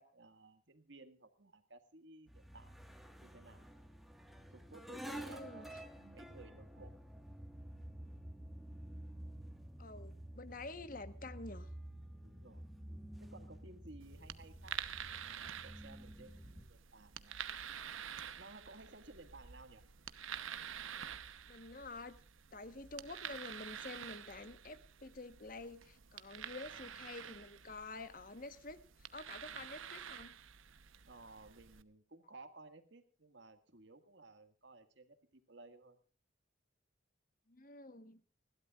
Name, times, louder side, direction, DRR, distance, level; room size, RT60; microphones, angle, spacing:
voice 1, 0.0-2.7 3.2-3.7 4.5-6.9 12.2-12.7 13.2-17.6 18.4-19.8 26.7-27.0 31.1-36.0, right 2 dB, 65° right, 9 dB, 1.8 m, -57 dB
sound 1, 2.3-16.6, right 1 dB, ahead, 1.6 m, -51 dB
voice 2, 5.0-5.7 9.8-11.7 21.5-22.2 22.5-30.3 37.5-38.2, left 3 dB, 45° left, 12 dB, 1.2 m, -49 dB
sound 2, 14.0-31.8, right 9 dB, 85° right, 1.0 m, -49 dB
30.0 x 12.0 x 2.4 m, 0.39 s
head